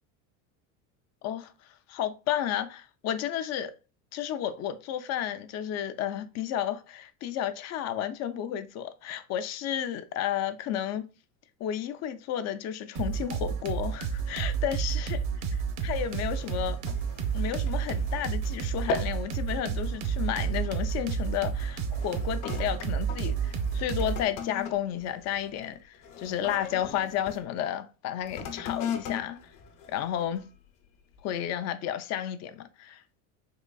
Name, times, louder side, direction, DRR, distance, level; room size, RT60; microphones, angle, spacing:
voice 1, 1.2-1.5 1.9-3.7 4.1-11.1 11.6-15.2 15.5-16.8 17.3-29.4 29.9-30.4 31.2-33.2, left 10 dB, 45° left, 0.5 m, -32 dB
sound 1, 13.0-24.2, right 7 dB, 55° right, 0.8 m, -31 dB
sound 2, 15.8-18.4 18.7-19.3 19.6-20.0 20.6-20.9 21.6-27.4 28.2-30.6 31.1-31.2, left 5 dB, 70° left, 0.9 m, -39 dB
3.8 x 3.1 x 2.2 m
supercardioid pair, 115°, 37 cm